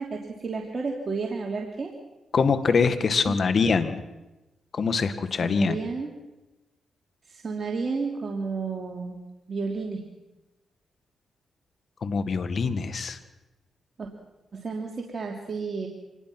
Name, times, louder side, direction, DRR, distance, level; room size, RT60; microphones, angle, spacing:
voice 1, 0.0-1.9 3.2-3.4 5.4-6.1 7.3-9.2 9.5-10.0 14.0-14.1 14.5-15.9, right 4 dB, 40° right, 0 dB, 3.0 m, -31 dB
voice 2, 2.3-4.0 4.7-5.8 12.0-13.2, left 5 dB, 55° left, 10 dB, 1.8 m, -24 dB
26.0 x 20.0 x 6.0 m, 1.0 s
supercardioid pair, 60°, 0 cm